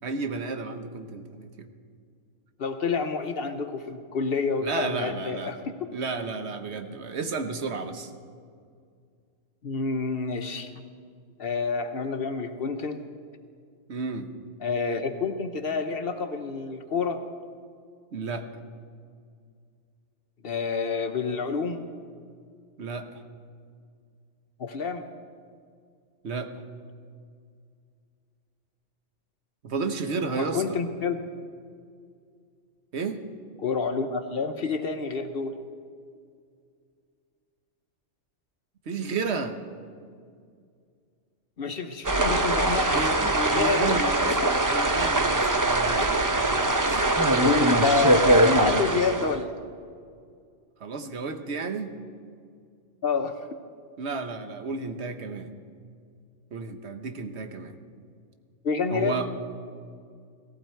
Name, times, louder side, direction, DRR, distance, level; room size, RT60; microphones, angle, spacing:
voice 1, 0.0-1.7 4.6-5.5 5.9-8.1 13.9-14.3 18.1-18.5 22.8-23.2 26.2-26.5 29.6-30.8 32.9-33.2 38.9-39.6 42.9-44.4 44.7-46.1 46.5-47.1 50.8-51.9 54.0-55.5 56.5-57.8 58.9-59.3, right 4 dB, 60° right, 7 dB, 1.2 m, -32 dB
voice 2, 2.6-5.8 9.6-10.7 11.4-13.0 14.6-17.2 20.4-21.8 24.6-25.1 30.3-31.2 33.6-35.5 41.6-43.0 43.3-44.0 44.3-44.6 47.4-49.6 53.0-53.4 58.6-59.2, left 4 dB, 55° left, 8 dB, 0.9 m, -28 dB
sound 1, 42.0-49.4, right 1 dB, 20° right, 0.5 m, -22 dB
17.5 x 15.0 x 4.5 m, 2.2 s
omnidirectional pair, 1.3 m